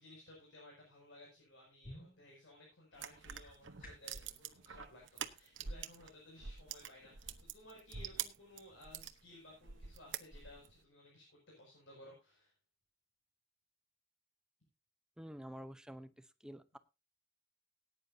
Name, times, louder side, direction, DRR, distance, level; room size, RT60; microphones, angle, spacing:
voice 1, 0.0-12.5, left 1 dB, 75° left, -2 dB, 6.1 m, -58 dB
sound 1, 1.8-4.2, equal, 50° left, 6.0 m, -56 dB
sound 2, 2.9-6.1 6.4-9.2 9.6-10.7, right 8 dB, 80° right, 1.0 m, -45 dB
voice 2, 15.2-16.8, equal, 5° right, 11 dB, 0.8 m, -49 dB
19.0 x 9.7 x 2.8 m, 0.27 s
head